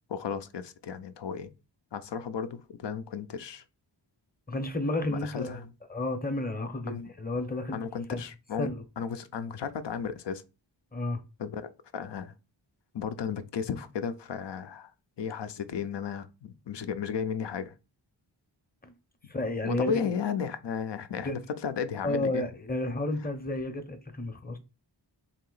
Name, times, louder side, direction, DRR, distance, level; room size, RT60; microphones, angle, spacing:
voice 1, 0.1-1.5 1.9-3.6 5.1-5.7 6.9-7.1 7.7-8.7 9.0-10.4 11.4-12.3 12.9-14.9 15.2-17.7 19.6-22.4, left 7 dB, 70° left, 0.6 m, -34 dB
voice 2, 4.5-5.6 5.9-7.8 8.1-8.2 8.6-8.8 10.9-11.2 18.8-18.9 19.3-20.0 21.2-21.4 22.0-24.6, left 2 dB, 20° left, 0.7 m, -31 dB
3.5 x 2.8 x 3.8 m
wide cardioid pair, 75°, 45 cm